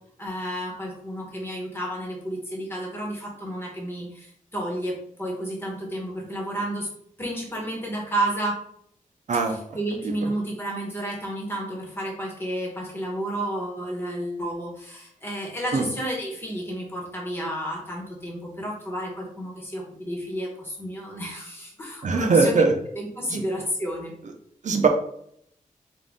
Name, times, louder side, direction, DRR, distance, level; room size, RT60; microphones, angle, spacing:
voice 1, 0.2-6.9 7.2-8.6 9.5-22.6 22.9-24.1, right 1 dB, 15° left, -2 dB, 1.3 m, -31 dB
voice 2, 22.0-22.7 23.3-23.4 24.6-24.9, right 4 dB, 60° right, 3 dB, 0.6 m, -20 dB
3.8 x 2.5 x 3.6 m, 0.70 s
wide cardioid pair, 120°, 14 cm